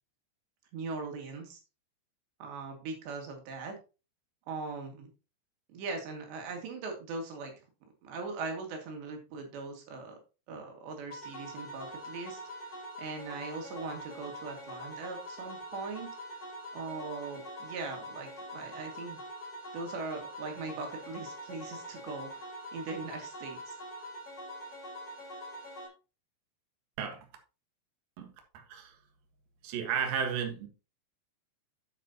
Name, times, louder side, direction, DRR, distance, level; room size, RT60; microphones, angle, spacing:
voice 1, 0.7-1.6 2.4-3.8 4.5-5.1 5.7-7.5 8.0-10.2 10.5-12.7 13.0-16.1 16.7-19.2 19.7-22.4 22.7-23.8, right 3 dB, 90° right, 3 dB, 4.3 m, -40 dB
sound 1, 11.1-25.9, equal, 35° left, 4.4 m, -44 dB
voice 2, 28.2-29.0 29.6-30.7, right 7 dB, 65° right, 4 dB, 3.1 m, -34 dB
9.2 x 8.9 x 2.9 m, 0.30 s
omnidirectional pair, 4.9 m